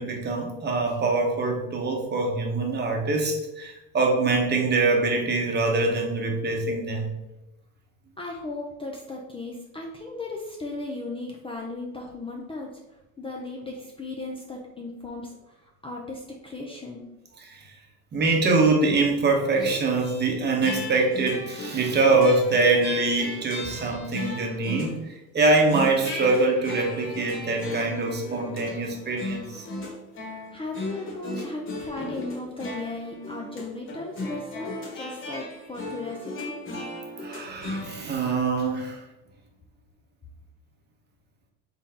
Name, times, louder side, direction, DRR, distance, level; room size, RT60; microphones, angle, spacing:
voice 1, 0.0-7.1 17.5-17.6 18.1-29.6 37.2-39.0, right 3 dB, 30° right, 1 dB, 0.9 m, -24 dB
voice 2, 8.2-12.7 13.2-17.1 30.5-36.6, left 2 dB, 15° left, -1 dB, 0.5 m, -36 dB
sound 1, 19.5-20.3 20.6-25.1 25.4-38.2, left 1 dB, 35° left, 1.1 m, -36 dB
3.9 x 3.6 x 2.8 m, 0.94 s
supercardioid pair, 105°, 35 cm